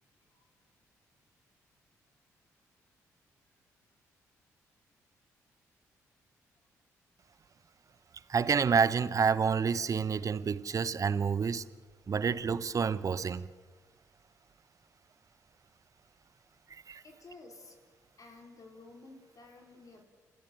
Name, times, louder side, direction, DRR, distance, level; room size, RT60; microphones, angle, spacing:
voice 1, 0.1-0.5 17.0-17.8 18.2-20.0, left 3 dB, 50° left, 4.8 m, -53 dB
voice 2, 8.3-11.7 12.1-13.5 16.7-17.0, right 6 dB, 45° right, 1.0 m, -29 dB
28.0 x 14.5 x 7.8 m
hypercardioid pair, 45°, 8 cm